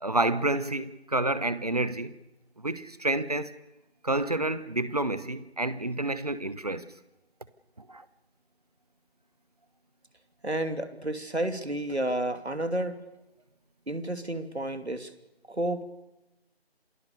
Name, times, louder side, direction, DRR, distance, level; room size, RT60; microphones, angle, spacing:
voice 1, 0.0-2.1 2.6-3.6 4.0-6.9 7.8-8.0, right 2 dB, 35° right, 1.2 m, -29 dB
voice 2, 10.4-13.0 13.9-15.1 15.5-15.8, right 1 dB, 80° right, 2.8 m, -31 dB
28.0 x 20.5 x 6.9 m
figure-of-eight pair, 165°, 32 cm